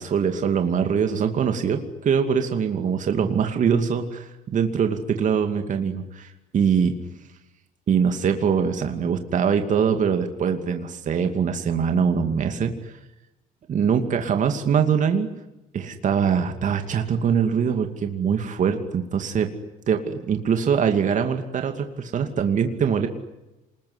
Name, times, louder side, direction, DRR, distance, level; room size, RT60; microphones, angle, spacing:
voice 1, 0.0-6.9 7.9-13.0 13.7-15.3 15.7-19.5 19.9-23.1, right 7 dB, 50° right, 6 dB, 2.6 m, -23 dB
27.5 x 21.0 x 9.8 m, 1.0 s
cardioid pair, 110°, 17 cm